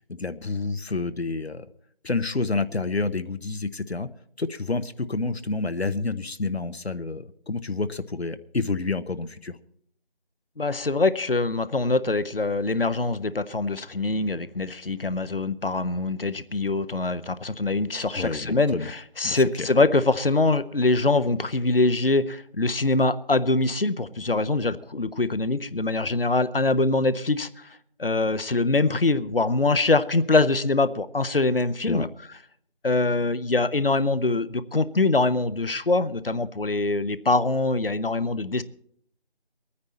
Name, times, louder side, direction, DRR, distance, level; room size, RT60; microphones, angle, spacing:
voice 1, 0.0-1.7 2.0-4.1 4.4-9.6 18.1-18.9 19.2-19.7 31.9-32.1, left 3 dB, 85° left, 11 dB, 1.0 m, -29 dB
voice 2, 10.6-27.5 28.0-32.1 32.8-38.6, left 3 dB, 60° left, 14 dB, 0.8 m, -23 dB
23.5 x 9.7 x 4.2 m, 0.65 s
figure-of-eight pair, 180°, 31 cm